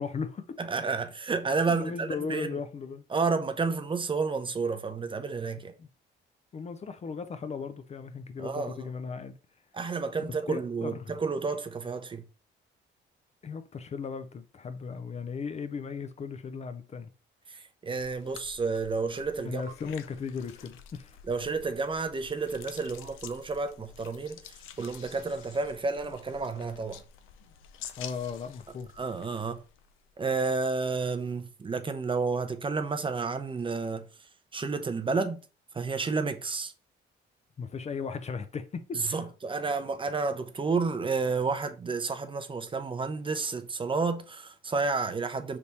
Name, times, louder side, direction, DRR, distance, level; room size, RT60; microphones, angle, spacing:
voice 1, 0.0-0.6 1.7-3.0 5.8-5.9 6.5-9.4 10.5-11.2 13.4-17.1 19.4-21.2 28.0-28.9 37.6-39.2, left 5 dB, 35° left, 0.4 m, -37 dB
voice 2, 0.6-2.6 3.1-5.7 8.4-8.9 9.7-12.2 17.5-19.6 21.3-27.0 29.0-29.6 30.2-34.1 34.5-35.4 35.7-36.7 38.9-45.6, right 4 dB, 25° right, 0.5 m, -31 dB
sound 1, 18.0-30.2, left 9 dB, 90° left, 0.4 m, -49 dB
3.4 x 2.8 x 4.1 m
cardioid pair, 90°, 20 cm